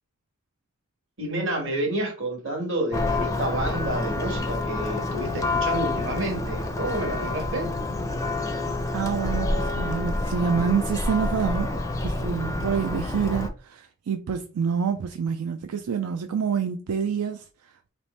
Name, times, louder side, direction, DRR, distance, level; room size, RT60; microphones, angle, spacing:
voice 1, 1.2-7.7, right 1 dB, 55° right, 1.4 m, -29 dB
Church bell, 2.9-13.5, left 2 dB, 15° left, 0.4 m, -28 dB
voice 2, 8.9-11.7 12.0-17.9, right 6 dB, 80° right, 0.4 m, -27 dB
3.4 x 3.0 x 4.1 m
head